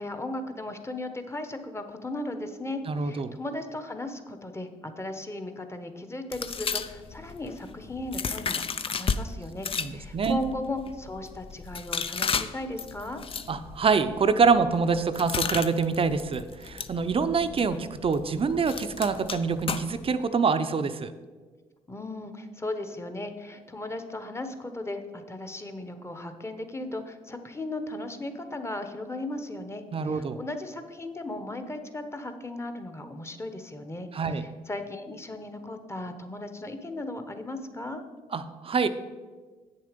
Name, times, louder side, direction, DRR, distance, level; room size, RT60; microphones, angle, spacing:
voice 1, 0.0-13.2 21.9-38.0, left 2 dB, 20° left, 8 dB, 1.1 m, -36 dB
voice 2, 2.9-3.4 9.8-10.4 13.5-21.1 29.9-30.4 34.1-34.4 38.3-38.9, right 5 dB, 40° right, 10 dB, 0.6 m, -25 dB
sound 1, 6.3-9.2 9.6-20.1, left 6 dB, 40° left, 0.5 m, -34 dB
8.2 x 6.8 x 5.2 m, 1.4 s
supercardioid pair, 65°, 14 cm